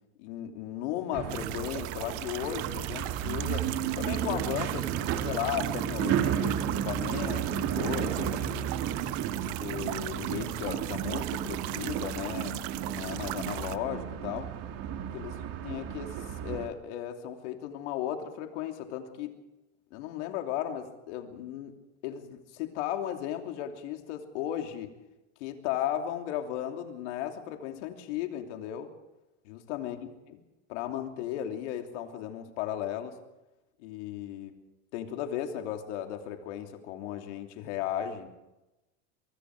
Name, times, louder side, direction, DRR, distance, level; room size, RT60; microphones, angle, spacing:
voice 1, 0.2-3.7 3.9-8.7 9.6-14.5 15.1-19.3 19.9-21.7 22.0-24.9 25.4-28.9 29.4-30.4 30.7-33.2 33.8-34.5 34.9-38.3, left 11 dB, 75° left, 4 dB, 3.1 m, -36 dB
sound 1, 1.1-16.7, right 9 dB, 45° right, 2.7 m, -33 dB
sound 2, 1.3-13.8, right 18 dB, 65° right, 1.1 m, -39 dB
23.5 x 23.5 x 4.9 m, 0.99 s
supercardioid pair, 130°, 35 cm